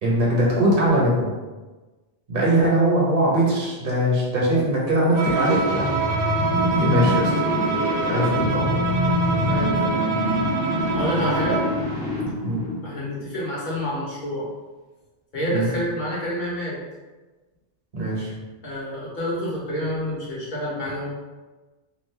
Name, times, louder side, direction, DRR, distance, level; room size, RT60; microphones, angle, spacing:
voice 1, 0.0-1.3 2.3-6.0 6.7-7.3 8.1-8.7 12.4-12.6 15.5-15.7 17.9-18.3, right 1 dB, 55° right, -5 dB, 1.2 m, -21 dB
sound 1, 5.1-13.2, left 1 dB, 5° right, 0.6 m, -26 dB
Bowed string instrument, 5.1-11.8, right 4 dB, 80° right, 1.0 m, -25 dB
voice 2, 9.5-10.0 10.9-11.6 12.8-14.5 15.3-16.8 18.6-21.1, equal, 45° left, -6 dB, 1.1 m, -28 dB
2.8 x 2.5 x 3.2 m, 1.2 s
omnidirectional pair, 1.1 m